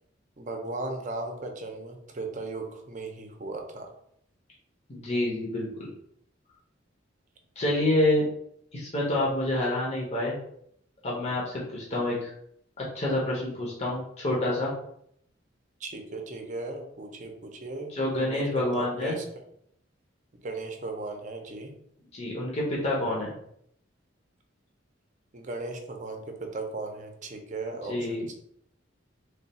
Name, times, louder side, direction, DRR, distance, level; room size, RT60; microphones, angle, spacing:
voice 1, 0.4-3.9 15.8-19.2 20.4-21.7 25.3-28.3, right 2 dB, 40° right, 3 dB, 0.6 m, -37 dB
voice 2, 4.9-5.9 7.6-8.2 8.7-10.4 11.0-12.3 12.8-14.7 17.9-19.2 22.1-23.3 27.9-28.2, left 1 dB, 35° left, -4 dB, 0.8 m, -28 dB
3.3 x 2.3 x 4.1 m, 0.71 s
head